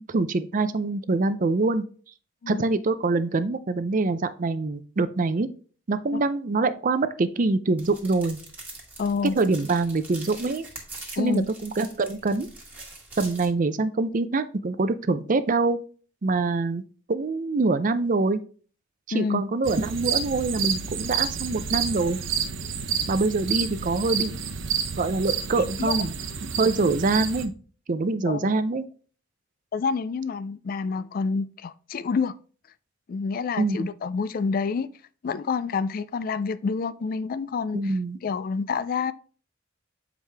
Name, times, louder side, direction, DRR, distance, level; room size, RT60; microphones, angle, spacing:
voice 1, 0.0-1.8 2.5-5.5 5.9-8.4 9.4-10.7 11.2-12.5 13.2-15.8 16.2-16.8 17.1-18.4 19.1-22.2 23.1-24.4 25.0-26.2 26.6-27.5 27.9-28.8 33.6-33.9 37.7-38.2, right 3 dB, 45° right, 0.5 m, -24 dB
sound 1, 7.8-13.5, right 2 dB, 10° right, 1.6 m, -43 dB
voice 2, 9.0-9.4 11.2-11.5 19.1-19.4 25.6-26.0 28.3-28.5 29.7-32.4 33.1-34.9 35.2-37.9 38.2-39.1, left 5 dB, 50° left, 0.3 m, -28 dB
sound 2, 19.6-27.4, right 7 dB, 90° right, 0.8 m, -29 dB
7.4 x 4.8 x 3.4 m
head